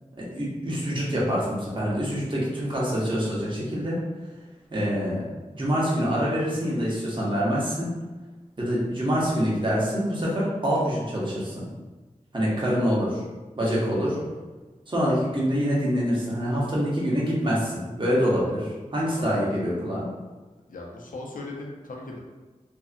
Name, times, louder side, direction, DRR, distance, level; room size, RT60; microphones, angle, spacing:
voice 1, 0.2-4.0 4.7-7.9 8.6-11.7 12.3-13.2 13.6-14.2 14.9-20.1, equal, 35° right, -6 dB, 0.8 m, -25 dB
voice 2, 14.0-14.5 19.1-19.6 20.7-22.2, left 2 dB, 80° left, -1 dB, 0.5 m, -39 dB
2.6 x 2.4 x 2.5 m, 1.2 s
wide cardioid pair, 60°, 14 cm